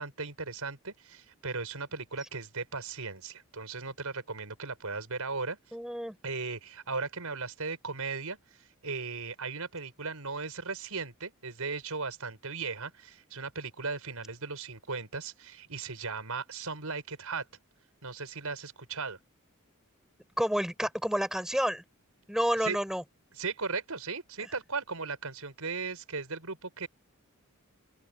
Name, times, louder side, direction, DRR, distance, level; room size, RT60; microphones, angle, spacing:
voice 1, 0.0-5.6 6.2-17.4 18.0-19.2 22.6-22.8 23.3-26.9, right 4 dB, 90° right, 5.1 m, -37 dB
voice 2, 5.7-6.2 20.4-21.8 22.3-23.0, equal, ahead, 5.9 m, -29 dB
open air
head